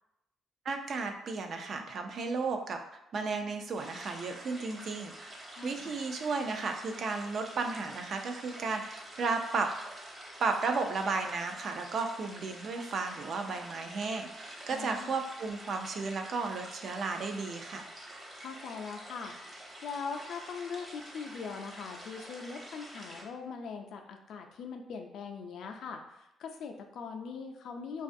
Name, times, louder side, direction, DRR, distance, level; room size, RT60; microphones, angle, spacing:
voice 1, 0.7-9.7 10.4-17.9, right 4 dB, 60° right, 5 dB, 0.3 m, -34 dB
sound 1, 3.8-23.2, right 1 dB, 25° right, 0.7 m, -48 dB
voice 2, 5.6-6.0 14.7-15.1 18.4-19.3 19.8-28.0, left 5 dB, 70° left, 4 dB, 0.3 m, -41 dB
2.5 x 2.3 x 2.5 m, 0.85 s
cardioid pair, 90°, 0 cm